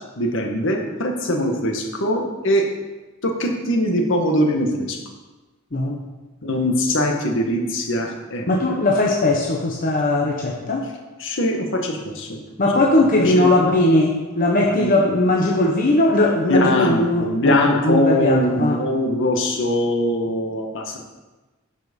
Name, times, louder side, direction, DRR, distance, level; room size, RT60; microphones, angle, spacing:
voice 1, 0.2-2.6 3.2-5.0 6.4-8.5 11.2-12.4 13.2-13.8 14.7-14.9 16.5-21.0, left 1 dB, 65° left, 2 dB, 1.6 m, -22 dB
voice 2, 5.7-6.0 8.5-10.9 12.6-18.8, left 2 dB, 45° left, -2 dB, 1.1 m, -19 dB
11.0 x 6.1 x 5.4 m, 1.2 s
head